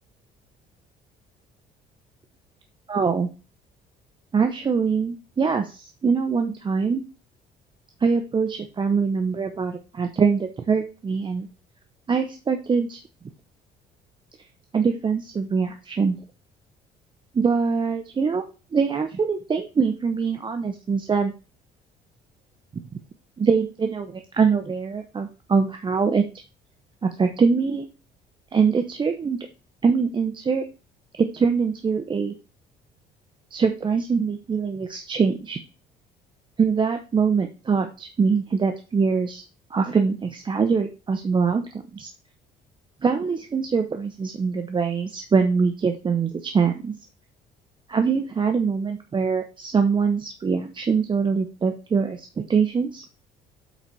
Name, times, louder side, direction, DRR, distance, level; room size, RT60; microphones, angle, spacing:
voice 1, 2.9-3.3 4.3-7.0 8.0-11.5 12.1-13.0 14.7-16.2 17.3-18.4 18.7-21.3 23.4-26.2 27.0-27.9 28.5-29.5 29.8-30.6 31.3-32.3 33.5-35.6 36.6-39.4 39.7-41.6 41.9-42.1 43.0-46.9 47.9-53.0, right 5 dB, 30° right, 6 dB, 0.8 m, -23 dB
8.2 x 4.1 x 4.7 m, 0.32 s
cardioid pair, 110°, 17 cm